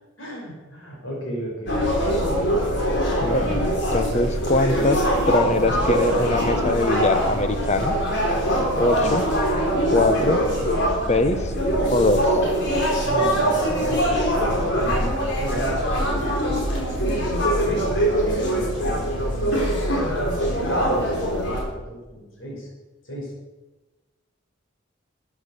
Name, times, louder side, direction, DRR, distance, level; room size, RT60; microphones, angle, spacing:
voice 1, 0.2-2.1 13.0-17.2 17.7-19.7 20.4-22.7 23.0-23.4, equal, 90° left, -2 dB, 5.8 m, -36 dB
sound 1, 1.7-21.6, equal, 60° left, 4.0 m, -22 dB
voice 2, 3.2-3.7 3.9-7.9 8.7-9.2 9.9-10.4 11.1-11.5 11.9-12.4, left 2 dB, 35° left, 10 dB, 1.0 m, -22 dB
13.5 x 9.6 x 6.7 m, 1.1 s
head